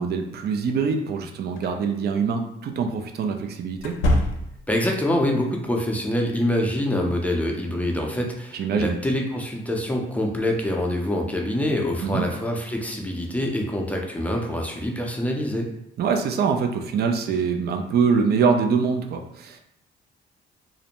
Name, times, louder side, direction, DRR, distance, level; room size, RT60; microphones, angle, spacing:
voice 1, 0.0-4.0 8.5-9.0 12.0-12.3 16.0-19.6, right 5 dB, 55° right, 5 dB, 0.4 m, -24 dB
sound 1, 1.6-1.7 3.8-4.8, left 1 dB, 80° left, 0.5 m, -24 dB
voice 2, 4.7-15.7, left 1 dB, 5° left, 0 dB, 0.5 m, -25 dB
2.5 x 2.1 x 2.9 m, 0.78 s
cardioid pair, 90°, 20 cm